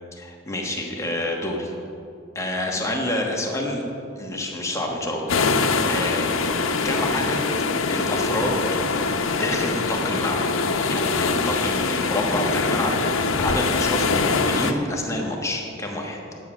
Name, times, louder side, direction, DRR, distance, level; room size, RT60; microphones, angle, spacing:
voice 1, 0.1-1.7 2.3-3.8 4.2-6.3 6.8-7.4 7.9-8.9 9.3-10.5 10.9-16.2, left 1 dB, 15° left, -1 dB, 1.2 m, -28 dB
sound 1, 5.3-14.7, left 4 dB, 90° left, 0.8 m, -23 dB
10.5 x 9.0 x 6.1 m, 2.7 s
head